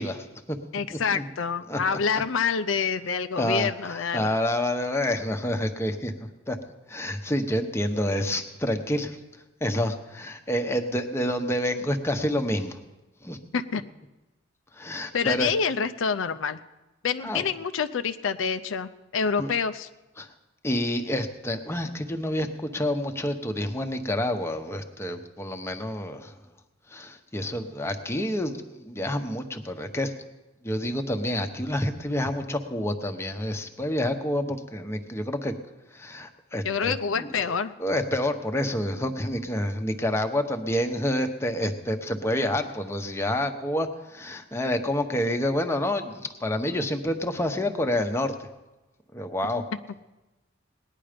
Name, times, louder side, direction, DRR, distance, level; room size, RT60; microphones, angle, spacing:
voice 1, 0.0-0.6 0.9-1.3 1.7-2.0 3.4-6.6 6.9-9.2 9.6-12.8 13.2-13.4 14.7-15.5 17.2-17.4 19.4-19.5 20.2-20.3 20.6-26.3 26.9-30.1 30.6-35.5 35.9-48.3 49.1-49.6, left 1 dB, 15° left, 5 dB, 0.9 m, -28 dB
voice 2, 0.7-4.4 13.5-13.8 15.1-16.6 17.0-19.9 36.6-37.7, left 6 dB, 85° left, 10 dB, 0.5 m, -27 dB
18.5 x 10.0 x 5.1 m, 1.1 s
head